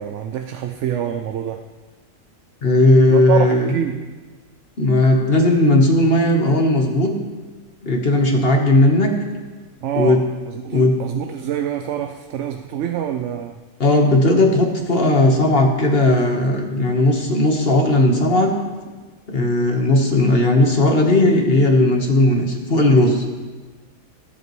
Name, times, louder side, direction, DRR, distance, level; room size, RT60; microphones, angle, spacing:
voice 1, 0.0-1.6 3.1-4.0 9.8-13.6, right 9 dB, 70° right, 6 dB, 0.9 m, -26 dB
voice 2, 2.6-3.7 4.8-7.1 7.8-9.1 9.9-10.2 10.7-11.0 13.8-18.5 19.3-23.3, left 1 dB, 50° left, 2 dB, 1.5 m, -16 dB
18.5 x 8.0 x 3.2 m, 1.3 s
omnidirectional pair, 1.3 m